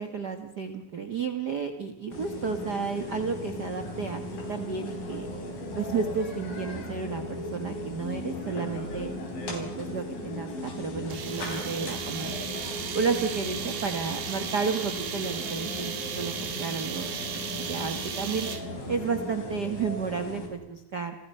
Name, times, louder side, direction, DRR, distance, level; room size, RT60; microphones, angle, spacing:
voice 1, 0.0-4.2 4.5-5.3 5.8-9.1 9.4-12.4 12.9-18.5 18.9-21.2, right 5 dB, 60° right, 7 dB, 1.1 m, -32 dB
sound 1, 2.1-20.5, left 1 dB, 70° left, 6.5 m, -37 dB
sound 2, 11.1-18.8, right 7 dB, 85° right, 4.2 m, -36 dB
30.0 x 27.5 x 5.6 m, 0.91 s
omnidirectional pair, 4.2 m